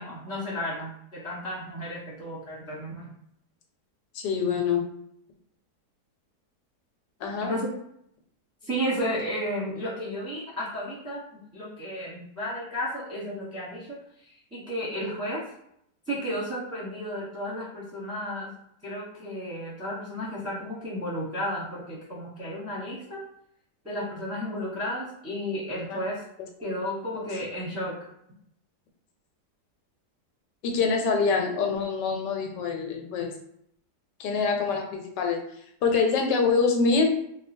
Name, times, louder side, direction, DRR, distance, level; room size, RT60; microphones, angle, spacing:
voice 1, 0.0-3.1 7.4-7.7 8.6-15.4 16.1-18.6 18.8-23.2 23.8-26.2 26.6-28.0, equal, 10° right, -8 dB, 0.8 m, -33 dB
voice 2, 4.1-4.8 7.2-7.5 25.9-26.0 30.6-33.3 34.2-35.4 35.8-37.1, left 5 dB, 85° left, 2 dB, 1.3 m, -25 dB
2.9 x 2.2 x 4.2 m, 0.72 s
omnidirectional pair, 1.8 m